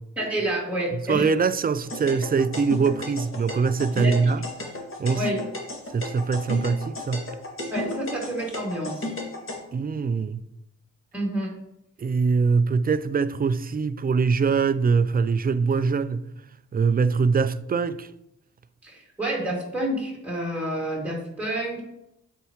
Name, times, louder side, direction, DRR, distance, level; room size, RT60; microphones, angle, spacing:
voice 1, 0.2-1.3 3.9-4.3 5.1-5.4 7.7-9.1 11.1-11.5 18.8-21.8, right 1 dB, 5° right, 2.2 m, -29 dB
voice 2, 0.9-4.4 5.0-5.2 5.9-7.3 9.7-10.4 12.0-16.3 16.7-18.1, right 5 dB, 25° right, 0.4 m, -23 dB
sound 1, 1.9-9.6, left 2 dB, 35° left, 2.1 m, -34 dB
7.8 x 4.7 x 3.0 m
hypercardioid pair, 45°, 35 cm